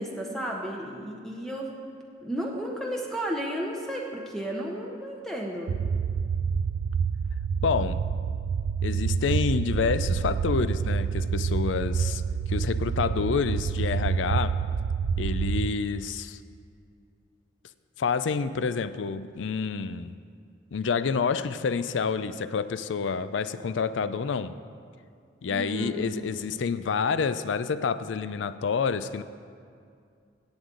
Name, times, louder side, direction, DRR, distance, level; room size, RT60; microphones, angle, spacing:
voice 1, 0.0-1.7 2.2-5.8 25.5-26.1, equal, ahead, -1 dB, 0.8 m, -33 dB
sound 1, 5.7-15.7, right 6 dB, 85° right, 0.3 m, -27 dB
voice 2, 7.6-8.0 8.8-12.2 12.5-14.6 15.2-16.4 18.0-20.1 20.7-24.5 25.4-29.2, left 5 dB, 75° left, 13 dB, 0.4 m, -28 dB
17.0 x 7.8 x 3.8 m, 2.3 s
head